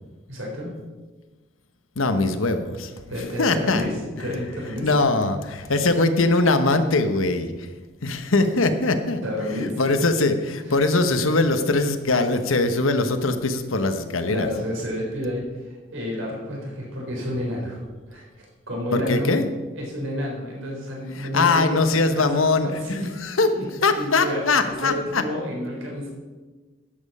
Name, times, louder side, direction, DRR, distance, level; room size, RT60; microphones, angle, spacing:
voice 1, 0.3-0.7 3.1-4.9 9.2-9.8 10.7-10.8 14.3-17.8 18.1-19.3 19.7-22.4 22.8-23.1 23.6-23.7 23.9-26.1, left 1 dB, 80° right, -2 dB, 4.1 m, -30 dB
voice 2, 2.0-2.9 3.4-3.9 4.8-7.7 8.0-9.2 9.8-14.5 18.9-19.5 21.2-22.7 23.2-23.5 23.8-25.2, left 3 dB, 85° left, 8 dB, 1.1 m, -21 dB
12.5 x 8.8 x 5.5 m, 1.3 s
head